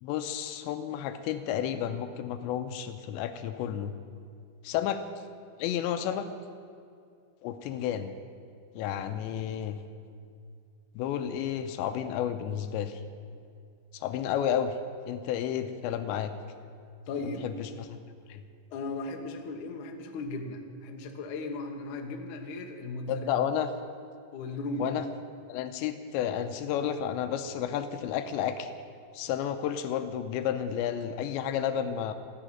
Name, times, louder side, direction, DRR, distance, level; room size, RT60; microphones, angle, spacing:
voice 1, 0.0-3.9 4.6-5.0 5.6-6.3 7.4-8.1 8.7-9.8 11.0-13.0 13.9-14.8 15.0-16.3 17.4-18.0 18.3-18.4 23.1-23.7 24.8-25.0 25.5-28.7 29.1-32.1, left 9 dB, 80° left, 9 dB, 2.9 m, -31 dB
voice 2, 17.1-17.4 18.7-23.3 24.3-24.9, left 2 dB, 65° left, 3 dB, 2.1 m, -36 dB
15.0 x 10.0 x 9.1 m, 2.3 s
omnidirectional pair, 5.2 m